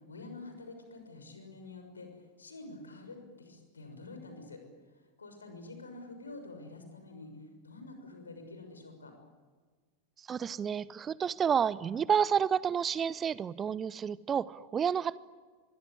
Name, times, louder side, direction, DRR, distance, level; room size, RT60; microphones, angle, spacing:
voice 1, 0.1-2.1 2.4-4.6 5.2-7.3 7.6-9.1, left 3 dB, 75° left, 6 dB, 6.4 m, -47 dB
voice 2, 10.2-15.2, right 7 dB, 20° right, 20 dB, 0.8 m, -30 dB
24.5 x 23.0 x 9.9 m, 1.4 s
figure-of-eight pair, 90°, 0 cm